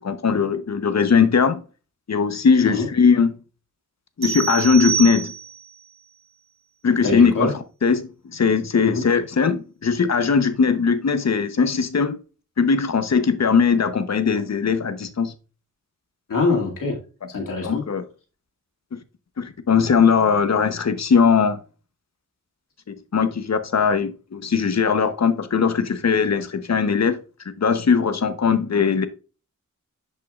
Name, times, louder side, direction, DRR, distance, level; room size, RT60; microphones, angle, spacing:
voice 1, 0.0-1.6 2.1-3.3 4.2-5.3 6.8-7.5 7.8-12.2 12.6-15.3 17.6-18.0 18.9-19.0 19.4-21.6 22.9-27.2 27.6-29.1, left 5 dB, 55° left, 1.0 m, -19 dB
sound 1, 4.2-5.7, right 8 dB, 40° right, 2.5 m, -27 dB
voice 2, 7.0-7.5 8.8-9.0 16.3-17.0 17.3-17.8, left 3 dB, 80° left, 2.4 m, -23 dB
10.5 x 5.5 x 2.4 m
wide cardioid pair, 85°, 32 cm